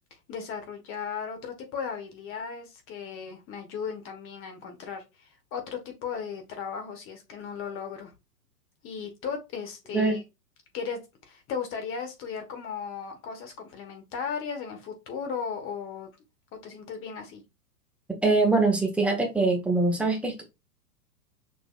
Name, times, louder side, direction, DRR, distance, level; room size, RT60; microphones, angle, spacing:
voice 1, 0.3-8.1 8.8-10.2 10.7-16.1 16.5-17.4, left 6 dB, 25° left, 1.2 m, -36 dB
voice 2, 18.2-20.4, right 3 dB, 5° right, 1.0 m, -23 dB
6.0 x 3.0 x 2.4 m
figure-of-eight pair, 110°, 48 cm